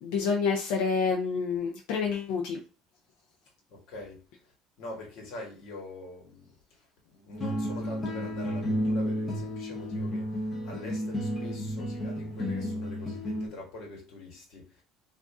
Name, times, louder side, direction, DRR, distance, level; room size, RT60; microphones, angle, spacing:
voice 1, 0.0-2.6, left 5 dB, 85° left, 0.5 m, -28 dB
voice 2, 3.7-14.8, left 2 dB, 50° left, 1.3 m, -44 dB
sound 1, 7.3-13.5, equal, 15° left, 0.7 m, -32 dB
2.6 x 2.5 x 3.3 m
cardioid pair, 175°, 0 cm